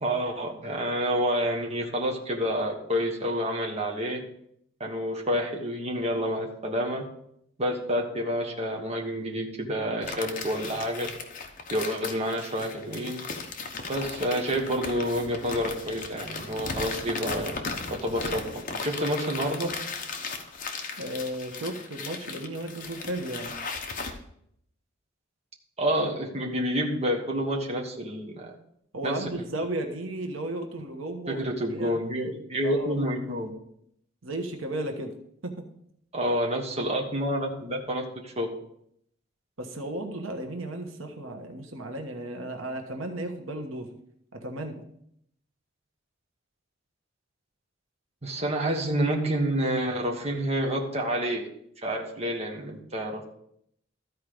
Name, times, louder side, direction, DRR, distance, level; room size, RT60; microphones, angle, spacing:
voice 1, 0.0-4.2 4.8-7.0 7.6-11.1 11.7-13.2 13.9-17.6 17.9-19.7 25.8-28.5 29.0-29.3 31.3-33.5 36.1-38.5 48.2-51.5 51.8-53.2, equal, 35° right, 1 dB, 1.3 m, -28 dB
sound 1, 10.0-24.1, left 4 dB, 45° left, 1.1 m, -36 dB
voice 2, 21.0-23.5 28.9-31.4 31.7-32.0 32.6-33.0 34.2-35.1 35.4-35.6 39.6-43.9 44.3-44.8, right 1 dB, 80° right, 4 dB, 1.2 m, -34 dB
13.5 x 4.7 x 5.0 m, 0.72 s
head